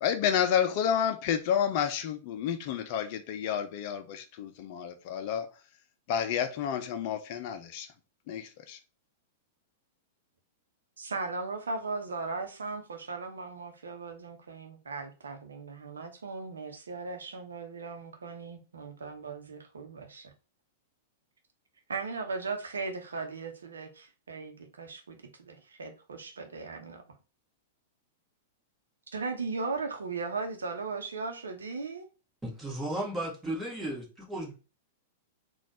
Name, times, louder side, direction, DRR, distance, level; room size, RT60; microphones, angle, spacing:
voice 1, 0.0-5.5 6.1-7.9 8.3-8.8, left 8 dB, 45° left, 0.6 m, -30 dB
voice 2, 11.0-20.3 21.9-27.0 29.1-32.0, right 4 dB, 70° right, 0.9 m, -37 dB
voice 3, 32.4-34.5, right 1 dB, 10° right, 1.6 m, -35 dB
4.1 x 2.5 x 4.1 m
figure-of-eight pair, 100°, 0 cm